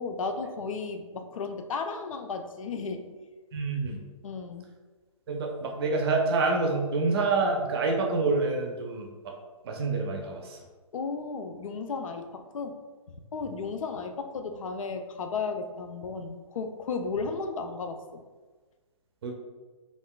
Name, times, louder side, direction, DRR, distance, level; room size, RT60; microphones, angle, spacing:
voice 1, 0.0-3.1 4.2-4.7 10.9-12.7 13.3-18.2, left 4 dB, 75° left, 7 dB, 0.4 m, -34 dB
voice 2, 3.5-4.0 5.3-9.3 9.6-10.6 13.5-13.6 19.2-19.3, right 3 dB, 45° right, 1 dB, 0.5 m, -27 dB
3.5 x 2.5 x 2.2 m, 1.3 s
hypercardioid pair, 135°, 17 cm